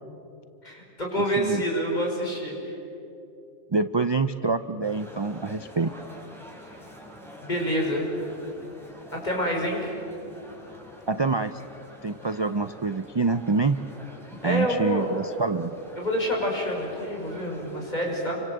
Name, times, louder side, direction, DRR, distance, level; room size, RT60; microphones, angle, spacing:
voice 1, 0.6-2.7 7.4-8.1 9.1-9.9 14.4-15.3 16.0-18.4, equal, 35° left, -1 dB, 6.0 m, -27 dB
voice 2, 1.1-1.6 3.7-5.9 11.1-11.6 12.0-13.8 14.4-15.7, right 3 dB, 40° right, 11 dB, 0.4 m, -26 dB
sound 1, 4.8-18.0, left 1 dB, ahead, 5.4 m, -46 dB
29.5 x 25.0 x 8.0 m, 2.8 s
omnidirectional pair, 1.4 m